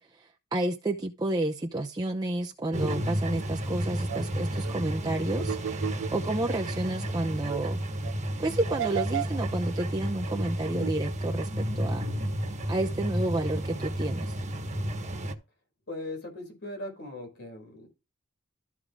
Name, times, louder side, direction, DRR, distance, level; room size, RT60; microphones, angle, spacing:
voice 1, 0.0-7.8 8.4-12.1 12.7-14.4, right 2 dB, 20° right, 0.7 m, -31 dB
sound 1, 2.7-15.3, right 1 dB, 35° right, 1.3 m, -32 dB
sound 2, 3.7-3.8 4.1-4.2 4.6-4.7 5.4-6.8 7.1-7.2 7.5-7.6 8.0-8.1 8.7-9.4 9.8-9.9 10.4-10.5 10.8-10.9, right 10 dB, 65° right, 0.3 m, -34 dB
voice 2, 15.9-17.9, left 1 dB, 55° left, 4.5 m, -39 dB
13.5 x 4.7 x 3.7 m
head